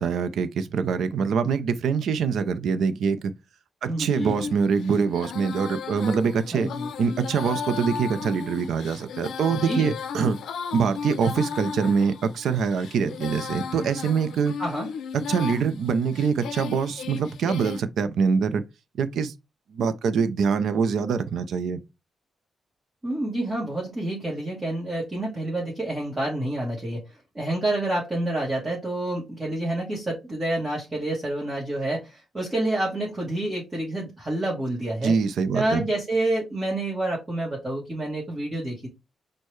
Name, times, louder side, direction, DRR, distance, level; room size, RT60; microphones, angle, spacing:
voice 1, 0.0-3.3 3.8-6.7 7.0-10.4 10.7-14.5 15.1-18.6 19.0-19.3 19.7-21.8 35.0-35.8, right 6 dB, 70° right, 0.5 m, -24 dB
voice 2, 3.9-4.4 6.5-6.9 9.6-9.9 14.6-14.9 23.0-27.0 27.3-35.1 35.5-38.9, right 1 dB, 20° right, 1.2 m, -28 dB
Female singing, 4.2-17.8, left 6 dB, 85° left, 0.4 m, -35 dB
6.2 x 2.1 x 3.1 m
wide cardioid pair, 165°, 0 cm